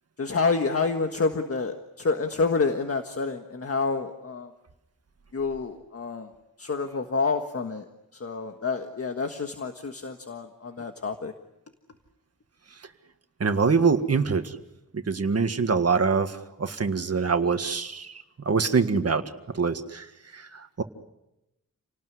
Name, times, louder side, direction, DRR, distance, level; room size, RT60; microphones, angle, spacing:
voice 1, 0.2-4.5 5.3-6.3 6.6-7.9 8.1-11.3, left 4 dB, 45° left, 5 dB, 1.6 m, -28 dB
voice 2, 13.4-14.6 14.9-19.2 19.5-20.1 20.3-20.8, right 5 dB, 45° right, 8 dB, 1.8 m, -24 dB
29.0 x 19.0 x 9.6 m, 0.93 s
wide cardioid pair, 140°, 33 cm